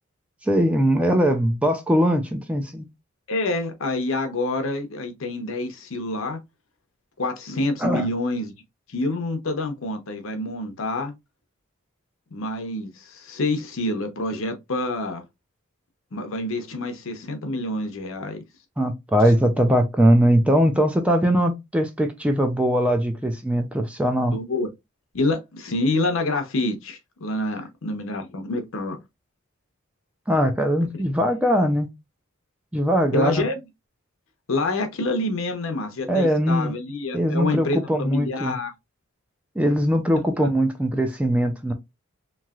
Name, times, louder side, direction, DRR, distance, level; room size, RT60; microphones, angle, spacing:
voice 1, 0.4-2.9 7.8-8.1 18.8-24.3 30.3-31.9 32.7-33.5 36.1-36.8 37.1-38.6 39.6-41.7, equal, 5° right, 0.4 m, -21 dB
voice 2, 3.3-6.4 7.2-8.5 8.9-11.1 12.3-15.2 16.1-18.4 24.3-24.7 25.1-29.0 30.9-31.0 33.1-33.6 34.5-38.7 40.4-40.5, left 2 dB, 65° left, 0.7 m, -27 dB
3.1 x 2.7 x 2.3 m
head